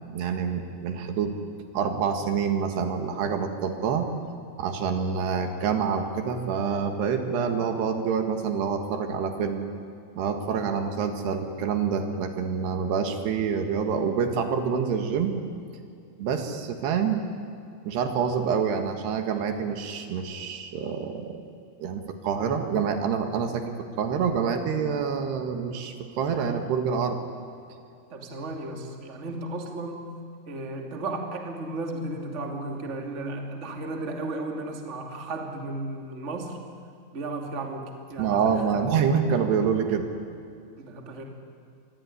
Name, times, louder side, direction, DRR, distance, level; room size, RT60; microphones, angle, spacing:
voice 1, 0.1-1.4 1.7-4.1 4.6-9.6 10.2-15.4 16.2-17.2 17.9-21.4 21.8-23.6 24.0-27.2 38.2-40.1, right 6 dB, 70° right, 6 dB, 3.8 m, -27 dB
voice 2, 28.1-30.1 30.5-36.6 37.1-39.3 40.8-41.2, right 2 dB, 25° right, 3 dB, 1.8 m, -34 dB
27.5 x 22.0 x 9.8 m, 2.5 s
omnidirectional pair, 5.2 m